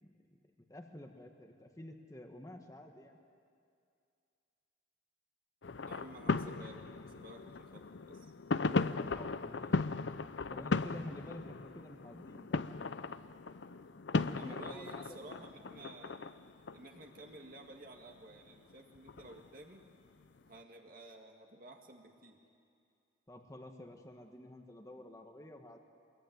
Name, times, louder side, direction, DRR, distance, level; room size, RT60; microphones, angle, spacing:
voice 1, 0.0-3.2 9.1-9.9 10.5-12.6 13.9-15.5 23.3-25.8, left 1 dB, 20° left, 3 dB, 1.4 m, -50 dB
sound 1, 5.6-18.2 18.7-19.5 20.2-20.3, left 3 dB, 75° left, 0.6 m, -37 dB
voice 2, 5.8-8.2 14.3-16.3 16.7-19.8 20.5-22.4, right 2 dB, 50° right, 1 dB, 2.1 m, -53 dB
25.0 x 21.5 x 9.5 m, 2.4 s
head